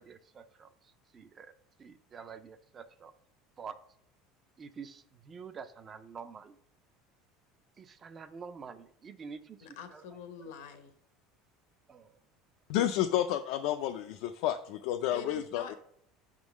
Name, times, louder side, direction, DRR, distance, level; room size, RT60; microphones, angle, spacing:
voice 1, 0.0-1.5 1.8-3.1 3.6-3.8 4.6-6.6 7.8-9.6 9.9-10.0 10.4-10.5 11.9-12.2, right 6 dB, 20° right, 11 dB, 0.4 m, -47 dB
voice 2, 9.6-10.9 15.1-15.7, left 6 dB, 85° left, 7 dB, 1.1 m, -44 dB
voice 3, 12.7-15.7, left 12 dB, 60° left, 7 dB, 0.4 m, -30 dB
6.2 x 3.7 x 6.1 m, 0.67 s
cardioid pair, 170°, 0 cm